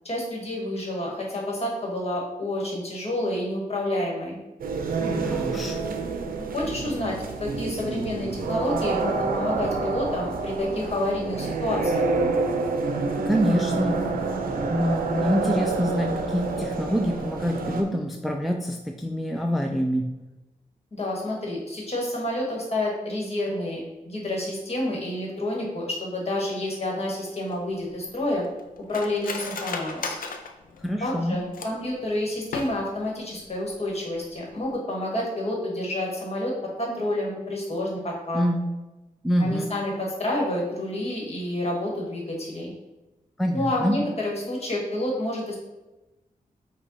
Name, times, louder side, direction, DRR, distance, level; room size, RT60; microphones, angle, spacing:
voice 1, 0.0-4.4 6.5-7.1 7.4-12.1 20.9-28.4 28.9-30.2 31.0-36.5 36.8-38.4 39.4-42.7 43.5-45.6, left 1 dB, 45° left, -2 dB, 1.3 m, -29 dB
sound 1, 4.6-17.8, right 3 dB, 90° right, 0.5 m, -28 dB
voice 2, 5.1-5.9 13.3-14.0 14.7-20.1 30.8-31.4 38.3-38.6 39.2-39.7 43.4-44.0, equal, ahead, 2 dB, 0.3 m, -26 dB
Cutlery silverware, 27.5-31.9 32.4-33.1 33.4-33.5 33.8-34.2 34.5-34.7, left 4 dB, 75° left, 0.5 m, -36 dB
4.9 x 2.3 x 4.0 m, 1.0 s
wide cardioid pair, 90°, 14 cm